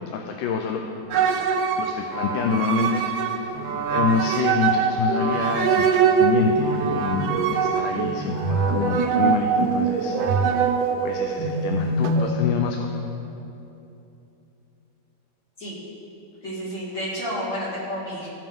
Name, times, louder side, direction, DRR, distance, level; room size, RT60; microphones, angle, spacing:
voice 1, 0.1-0.8 1.8-3.6 3.9-10.2 11.0-12.9, left 5 dB, 80° left, 3 dB, 1.3 m, -27 dB
sound 1, 1.1-12.3, right 5 dB, 85° right, 1.4 m, -23 dB
voice 2, 16.4-18.3, equal, 60° left, -8 dB, 3.0 m, -30 dB
15.5 x 5.1 x 3.6 m, 2.8 s
omnidirectional pair, 2.1 m